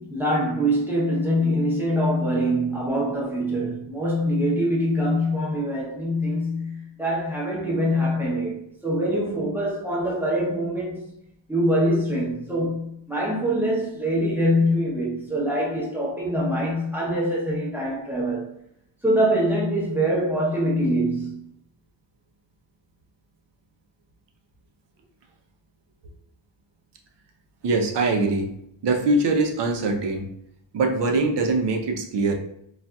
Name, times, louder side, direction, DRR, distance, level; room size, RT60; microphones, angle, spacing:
voice 1, 0.0-11.1 11.5-18.5 19.0-21.4, equal, 5° right, 0.7 m, -24 dB
voice 2, 27.6-28.5 28.8-30.2 30.7-32.3, right 3 dB, 65° right, 0.7 m, -22 dB
4.0 x 2.4 x 2.3 m
wide cardioid pair, 175°, 45 cm